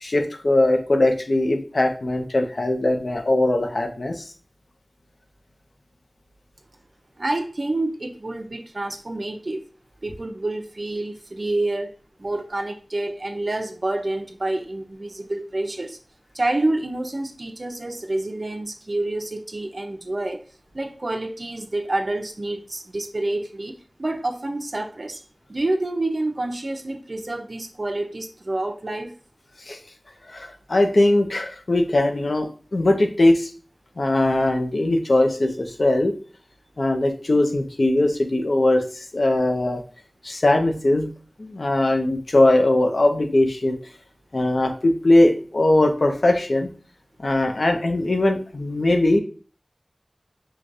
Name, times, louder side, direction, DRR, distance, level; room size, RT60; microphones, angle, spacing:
voice 1, 0.0-4.2 29.7-29.8 30.3-33.5 34.0-36.1 36.8-39.8 40.2-41.1 41.4-43.8 44.3-46.7 47.2-49.2, left 1 dB, 80° left, 4 dB, 0.6 m, -20 dB
voice 2, 7.2-9.7 10.0-11.9 12.2-16.0 16.3-20.4 20.7-25.2 25.5-29.1, right 2 dB, 60° right, 6 dB, 0.5 m, -28 dB
4.8 x 2.2 x 2.5 m, 0.39 s
wide cardioid pair, 55°, 0 cm